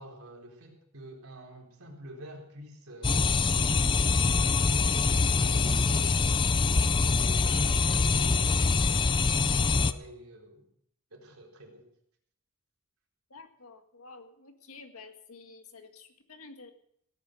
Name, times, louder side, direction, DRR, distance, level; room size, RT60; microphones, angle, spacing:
voice 1, 0.0-3.4 4.0-6.9 7.2-10.6 11.1-11.9, equal, 75° right, -1 dB, 4.1 m, -47 dB
sound 1, 3.0-9.9, left 4 dB, 20° left, 0.4 m, -24 dB
voice 2, 13.3-16.7, left 4 dB, 80° left, 6 dB, 1.8 m, -50 dB
17.0 x 9.4 x 6.5 m, 0.70 s
head